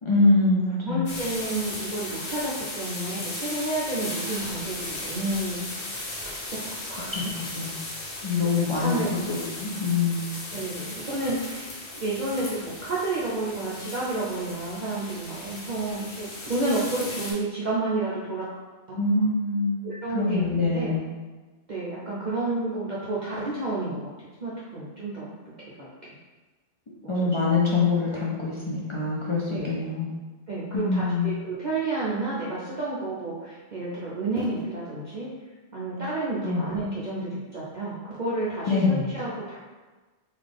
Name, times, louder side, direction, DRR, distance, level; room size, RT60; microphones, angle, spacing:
voice 1, 0.0-1.1 7.1-7.7 8.2-10.3 18.9-19.8 20.1-21.0 27.1-30.1 30.7-31.3 36.4-36.7 38.7-39.1, left 3 dB, 50° left, -5 dB, 0.3 m, -24 dB
voice 2, 0.8-5.6 6.7-7.3 8.7-9.1 10.5-11.7 11.9-18.6 19.8-21.0 21.7-24.1 24.4-26.1 27.4-27.5 29.5-29.7 30.5-35.3 35.7-39.6, right 2 dB, 50° right, -7 dB, 0.6 m, -30 dB
sound 1, 1.1-17.3, left 2 dB, 70° left, 1.1 m, -36 dB
3.8 x 2.4 x 3.3 m, 1.3 s
omnidirectional pair, 1.2 m